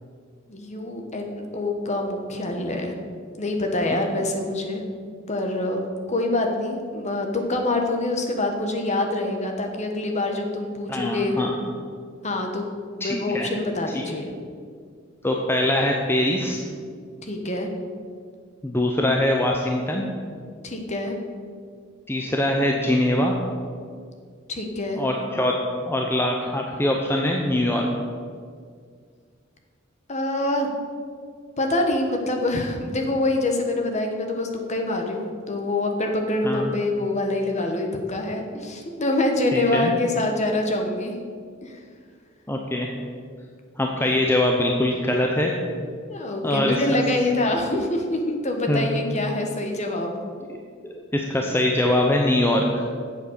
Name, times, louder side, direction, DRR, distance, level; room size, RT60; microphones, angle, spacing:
voice 1, 0.5-2.9 3.4-4.8 5.3-11.4 12.2-12.7 13.0-14.3 17.2-17.7 20.6-21.2 24.5-25.0 30.1-30.7 31.6-41.2 41.6-41.8 46.1-50.1, left 2 dB, 35° left, 3 dB, 1.2 m, -25 dB
voice 2, 10.9-11.5 13.0-13.5 13.9-14.0 15.2-16.6 18.6-20.0 22.1-23.3 25.0-25.5 25.8-27.9 36.4-36.8 39.5-39.9 42.5-42.9 43.8-45.6 46.4-47.0 48.7-48.9 50.5-50.6 50.9-52.8, left 1 dB, 10° left, 0 dB, 0.7 m, -23 dB
8.1 x 7.3 x 6.7 m, 2.1 s
head